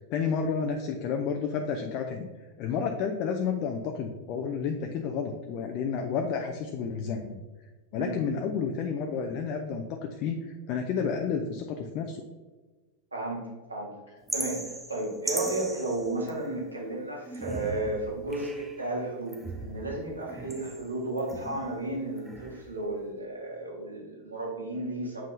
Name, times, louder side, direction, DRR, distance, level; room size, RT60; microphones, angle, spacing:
voice 1, 0.1-2.3 2.6-7.4 7.9-12.2, left 6 dB, 40° left, 4 dB, 0.5 m, -31 dB
voice 2, 13.1-13.4 13.7-13.9 14.3-25.2, right 2 dB, 80° right, -2 dB, 1.6 m, -33 dB
Water Drip, 14.3-16.7 17.2-18.9 19.3-21.8 22.2-22.8, right 2 dB, 10° right, 0.7 m, -39 dB
7.5 x 5.4 x 2.6 m, 1.3 s
figure-of-eight pair, 90°, 0 cm